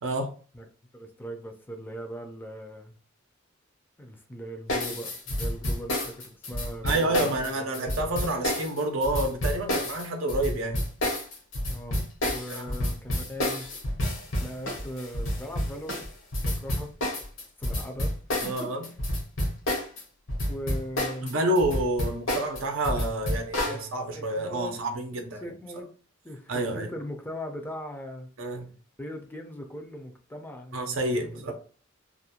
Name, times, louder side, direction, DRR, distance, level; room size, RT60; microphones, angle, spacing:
voice 1, 0.9-3.0 4.0-7.9 11.7-13.7 14.4-16.0 16.4-17.2 17.6-18.1 18.4-18.5 20.4-21.4 23.7-23.8 24.1-24.8 25.1-25.9 26.2-28.3 29.0-31.3, equal, 10° left, 3 dB, 0.4 m, -39 dB
sound 1, 4.7-20.0 20.3-23.8, left 1 dB, 70° left, 0.8 m, -29 dB
voice 2, 6.8-10.8 12.5-12.8 18.4-18.9 21.2-25.5 26.5-26.9 28.4-28.7 30.7-31.5, right 1 dB, 80° right, 4 dB, 0.5 m, -29 dB
2.4 x 2.1 x 2.8 m, 0.40 s
head